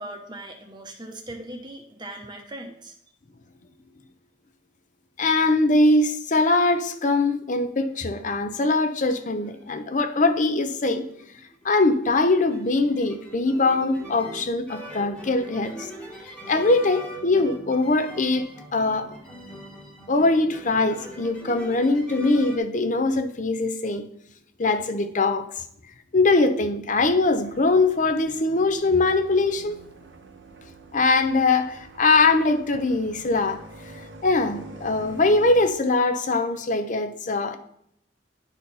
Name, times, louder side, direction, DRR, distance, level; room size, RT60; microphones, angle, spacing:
voice 1, 0.0-2.9, right 1 dB, 25° right, 0.9 m, -39 dB
voice 2, 5.2-11.0 11.6-15.9 16.5-19.1 20.1-24.0 24.6-25.5 26.1-29.8 30.9-33.6 34.2-37.6, left 3 dB, 45° left, 0.7 m, -22 dB
sound 1, 7.9-8.7 9.0-22.6, right 1 dB, 5° left, 1.4 m, -43 dB
sound 2, 27.2-35.7, right 2 dB, 75° right, 1.0 m, -45 dB
11.0 x 4.2 x 4.1 m
head